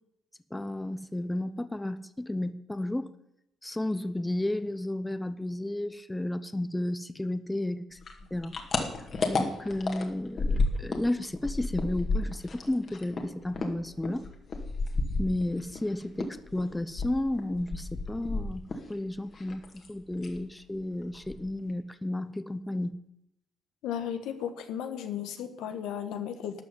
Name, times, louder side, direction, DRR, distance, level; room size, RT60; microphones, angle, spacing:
voice 1, 0.5-3.1 3.6-8.0 8.3-8.5 9.3-14.3 15.2-22.9, left 1 dB, 10° left, 13 dB, 0.8 m, -32 dB
sound 1, 8.0-11.1 11.3-15.8 16.2-18.9 19.2-19.9 20.2-20.4 20.8-20.9 21.1-21.7, left 3 dB, 45° left, 2.2 m, -31 dB
voice 2, 23.8-26.6, left 9 dB, 90° left, 8 dB, 1.3 m, -35 dB
12.5 x 6.1 x 9.6 m, 0.82 s
cardioid pair, 90°, 0 cm